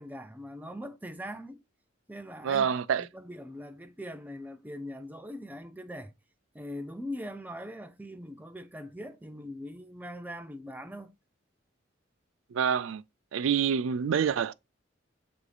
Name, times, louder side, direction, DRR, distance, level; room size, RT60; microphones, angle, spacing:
voice 1, 0.0-1.6 2.1-2.7 3.0-6.1 6.5-11.1, equal, 10° right, 0.4 m, -41 dB
voice 2, 2.4-3.0 12.5-13.0 13.3-14.5, right 7 dB, 75° right, 0.4 m, -27 dB
7.4 x 2.6 x 4.9 m
head